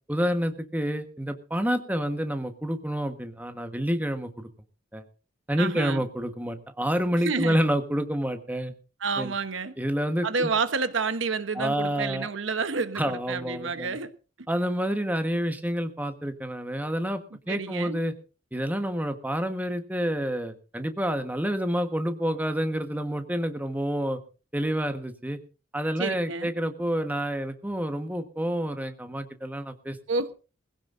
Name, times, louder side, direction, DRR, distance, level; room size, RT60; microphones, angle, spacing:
voice 1, 0.1-4.5 4.9-5.0 5.5-8.7 9.2-9.3 9.8-10.5 11.5-12.3 12.9-14.0 14.5-17.2 17.5-18.1 18.5-24.2 24.5-25.4 25.7-30.0, equal, 10° right, 1.3 m, -28 dB
voice 2, 5.6-6.0 7.2-7.6 9.0-9.7 10.2-14.1 14.4-14.5 17.5-18.0 26.0-26.5 30.1-30.3, right 4 dB, 65° right, 1.1 m, -29 dB
21.0 x 16.0 x 2.6 m
head